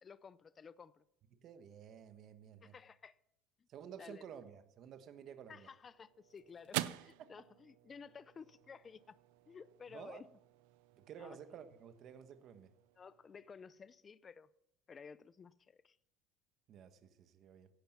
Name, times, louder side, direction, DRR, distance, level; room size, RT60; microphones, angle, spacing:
voice 1, 0.0-1.0 2.6-3.2 4.0-4.2 5.5-9.2 9.5-10.3 11.2-11.4 13.0-14.5 14.9-16.0, left 6 dB, 20° left, 0.5 m, -54 dB
voice 2, 1.3-2.7 3.7-5.7 9.9-10.2 10.9-12.7 16.7-17.7, right 8 dB, 40° right, 1.3 m, -53 dB
sound 1, 5.4-14.0, right 17 dB, 85° right, 0.6 m, -48 dB
16.0 x 12.0 x 5.9 m
cardioid pair, 155°, 0 cm